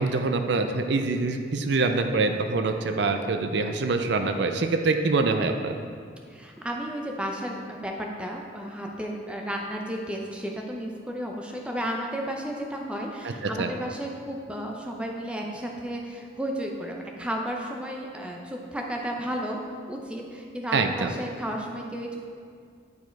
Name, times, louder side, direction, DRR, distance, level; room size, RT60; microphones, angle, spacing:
voice 1, 0.0-5.7 13.2-13.3 13.6-13.7 20.7-21.1, right 3 dB, 65° right, 6 dB, 0.5 m, -25 dB
voice 2, 6.3-19.6 19.9-22.2, equal, 5° right, 0 dB, 0.6 m, -33 dB
9.4 x 4.7 x 4.6 m, 2.2 s
head